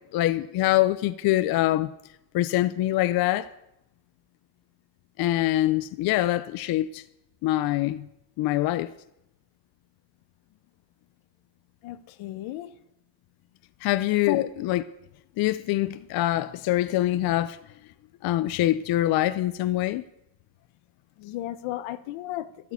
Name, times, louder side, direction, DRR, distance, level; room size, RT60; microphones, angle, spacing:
voice 1, 0.1-1.9 2.3-3.5 5.2-7.0 7.4-8.1 8.4-8.9 13.8-14.8 15.4-17.6 18.2-20.0, left 15 dB, 50° left, 0.5 m, -24 dB
voice 2, 11.8-12.8 14.3-14.5 21.2-22.7, left 15 dB, 75° left, 1.1 m, -32 dB
13.5 x 11.0 x 8.1 m
cardioid pair, 175°, 47 cm